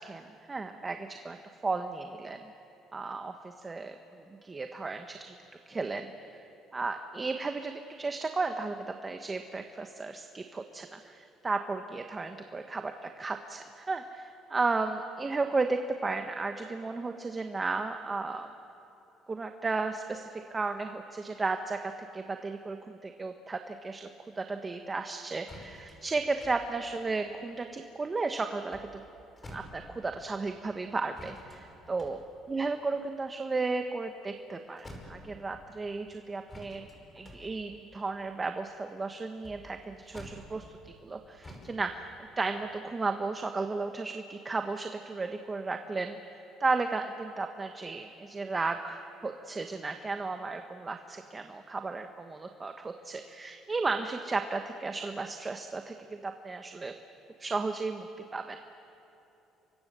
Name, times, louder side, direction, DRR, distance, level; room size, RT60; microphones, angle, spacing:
voice 1, 0.0-1.4 1.6-2.4 2.9-5.3 5.7-6.4 6.7-18.5 19.3-24.1 24.4-29.0 29.5-32.2 32.5-36.9 37.1-42.1 42.4-56.9 57.4-58.1 58.3-58.6, right 3 dB, 25° right, 6 dB, 1.2 m, -34 dB
sound 1, 25.5-28.1 28.5-30.3 31.1-34.5 34.8-35.8 36.5-41.1 41.4-41.8, left 1 dB, 20° left, 5.4 m, -50 dB
29.5 x 24.0 x 6.9 m, 2.9 s
cardioid pair, 110°, 0 cm